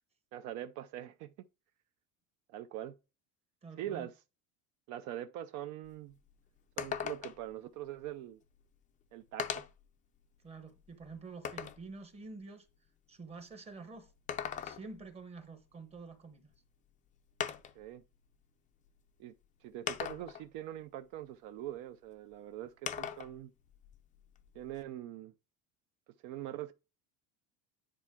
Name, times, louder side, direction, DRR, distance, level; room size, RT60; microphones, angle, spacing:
voice 1, 0.3-1.3 2.5-2.9 3.8-4.2 4.9-6.2 6.8-8.4 9.1-9.7 17.8-18.0 19.2-19.3 19.6-23.5 24.5-25.3 26.2-26.7, right 12 dB, 55° right, 0.6 m, -43 dB
voice 2, 3.6-4.1 10.4-12.7 13.1-14.1 14.6-16.5, right 3 dB, 15° right, 1.0 m, -48 dB
sound 1, 5.8-5.9 6.3-6.4 6.8-7.5 8.6-8.7 9.4-9.9 10.4-11.9 14.1-15.1 16.5-16.6 17.4-17.9 18.9-19.0 19.9-20.5 22.9-23.3 23.7-24.8, left 8 dB, 20° left, 0.5 m, -39 dB
10.0 x 4.5 x 3.6 m
cardioid pair, 165°, 37 cm